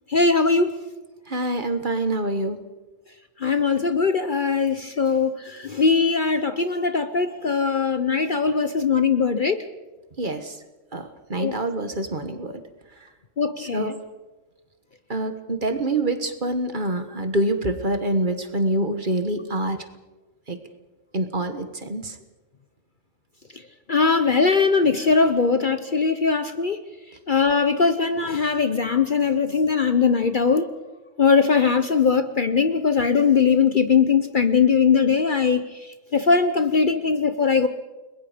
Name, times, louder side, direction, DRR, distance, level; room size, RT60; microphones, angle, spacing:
voice 1, 0.1-0.7 3.4-9.6 11.4-11.6 13.4-13.9 23.9-26.8 27.3-30.7 31.2-37.7, left 5 dB, 45° left, 10 dB, 0.9 m, -20 dB
voice 2, 1.3-2.6 10.2-10.5 10.9-12.6 13.6-14.0 15.1-19.8 20.5-20.6 21.1-22.1, right 1 dB, 40° right, 8 dB, 1.5 m, -26 dB
29.5 x 21.0 x 5.1 m, 1.2 s
omnidirectional pair, 1.4 m